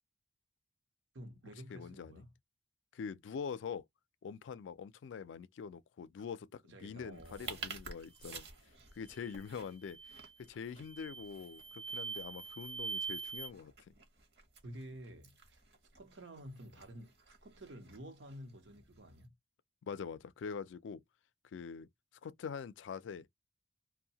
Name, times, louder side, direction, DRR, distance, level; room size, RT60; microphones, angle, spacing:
voice 1, 1.1-2.3 6.7-7.7 14.6-15.6 15.9-19.3, equal, 85° right, 0.7 m, -51 dB
voice 2, 1.7-2.3 2.9-3.9 4.2-8.5 8.9-10.0 10.4-13.7 19.8-21.0 21.5-21.9 22.2-23.3, left 6 dB, 90° left, 0.3 m, -44 dB
sound 1, 7.1-19.2, right 4 dB, 60° right, 0.9 m, -53 dB
sound 2, 9.1-9.4 9.8-10.3 10.8-13.5, right 5 dB, 10° left, 0.3 m, -43 dB
2.7 x 2.1 x 2.7 m
head